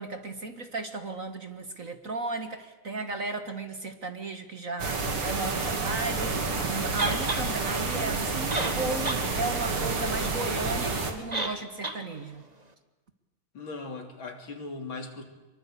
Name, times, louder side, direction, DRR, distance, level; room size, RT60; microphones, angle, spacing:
voice 1, 0.0-12.4, right 3 dB, 40° right, 8 dB, 1.8 m, -35 dB
sound 1, 4.8-11.1, right 3 dB, 75° right, 3.7 m, -29 dB
sound 2, 7.0-7.4 8.2-8.3 8.5-9.2 9.6-9.7 11.3-11.6 11.8-12.0, right 2 dB, 20° right, 1.8 m, -30 dB
voice 2, 13.5-15.2, left 3 dB, 65° left, 4 dB, 3.8 m, -38 dB
24.5 x 23.5 x 8.5 m, 1.1 s
omnidirectional pair, 2.4 m